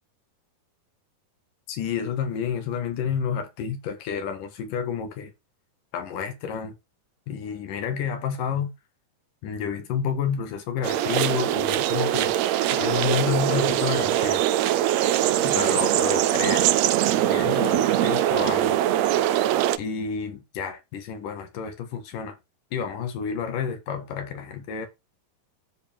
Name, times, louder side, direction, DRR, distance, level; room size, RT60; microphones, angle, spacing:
voice 1, 1.7-5.3 5.9-6.7 7.3-8.7 9.4-12.3 12.7-14.5 15.4-16.7 17.3-18.8 19.8-22.4 22.7-24.9, left 7 dB, 75° left, 3.2 m, -29 dB
sound 1, 10.8-19.8, right 12 dB, 80° right, 1.6 m, -22 dB
13.0 x 5.0 x 3.6 m
omnidirectional pair, 3.8 m